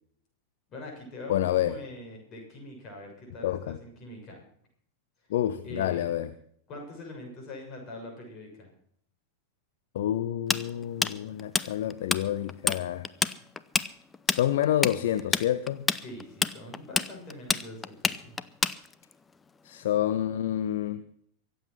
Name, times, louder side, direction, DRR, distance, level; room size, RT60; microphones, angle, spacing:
voice 1, 0.7-4.4 5.6-6.0 6.7-8.7 16.0-18.4, left 1 dB, 30° left, 1 dB, 6.8 m, -43 dB
voice 2, 1.3-1.7 3.4-3.8 5.3-6.3 9.9-13.1 14.3-15.9 19.6-21.0, left 12 dB, 55° left, 12 dB, 0.7 m, -28 dB
Tools, 10.5-12.2 12.5-12.8 13.1-19.1, left 4 dB, 15° left, 0.6 m, -27 dB
23.5 x 7.9 x 6.0 m, 0.65 s
figure-of-eight pair, 90°, 0 cm